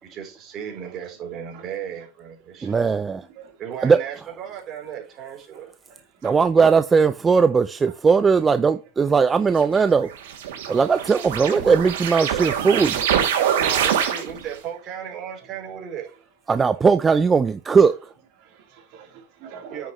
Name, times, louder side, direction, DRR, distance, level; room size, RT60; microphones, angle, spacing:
voice 1, 0.0-2.8 3.6-5.7 13.4-16.1 19.7-19.9, right 9 dB, 40° right, 3.7 m, -35 dB
voice 2, 2.6-3.2 3.8-4.0 6.2-10.1 10.7-13.0 16.5-18.0, right 5 dB, 20° right, 0.5 m, -18 dB
sound 1, 9.6-14.6, right 9 dB, 80° right, 2.7 m, -25 dB
voice 3, 10.6-11.0 12.2-12.4 12.9-13.1 13.4-13.5 14.0-14.1 18.4-19.9, right 7 dB, 60° right, 3.7 m, -43 dB
9.3 x 6.3 x 3.2 m
supercardioid pair, 115°, 0 cm